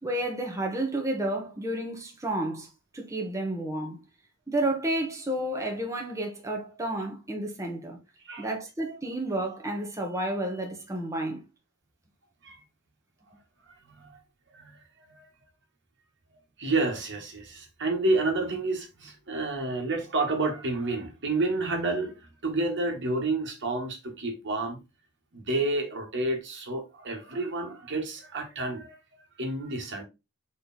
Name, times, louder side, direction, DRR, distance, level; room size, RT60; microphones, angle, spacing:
voice 1, 0.0-2.7 2.9-4.0 4.5-8.0 8.4-11.4, right 1 dB, 15° right, 1.3 m, -31 dB
voice 2, 16.6-22.1 22.4-24.8 25.3-29.0 29.4-30.0, right 2 dB, 55° right, 1.9 m, -29 dB
5.1 x 4.3 x 4.3 m
head